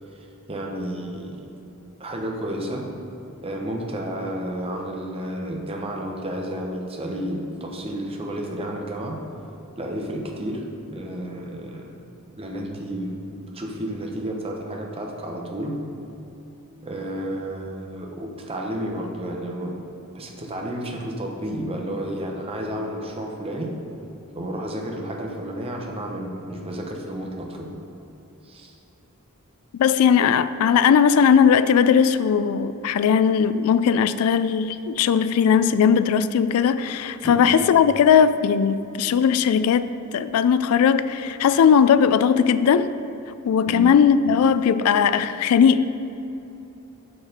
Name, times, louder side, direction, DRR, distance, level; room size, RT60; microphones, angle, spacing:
voice 1, 0.5-1.5 2.0-2.9 3.4-9.2 9.8-10.6 10.9-11.9 12.4-13.1 13.5-15.8 16.8-19.8 20.1-23.7 24.3-27.7 28.4-28.7 37.2-37.5 43.7-43.9, right 1 dB, 25° right, 0.9 m, -31 dB
voice 2, 29.8-42.9 43.4-45.8, left 7 dB, 75° left, 0.3 m, -18 dB
6.7 x 6.5 x 5.0 m
head